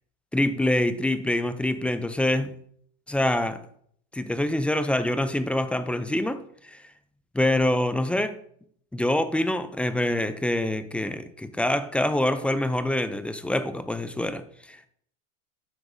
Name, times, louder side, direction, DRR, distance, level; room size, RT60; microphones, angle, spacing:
voice 1, 0.3-2.5 3.1-3.6 4.1-6.8 7.3-8.4 8.9-14.9, left 1 dB, 5° left, 0.4 m, -25 dB
9.8 x 6.8 x 2.7 m
hypercardioid pair, 105°, 37 cm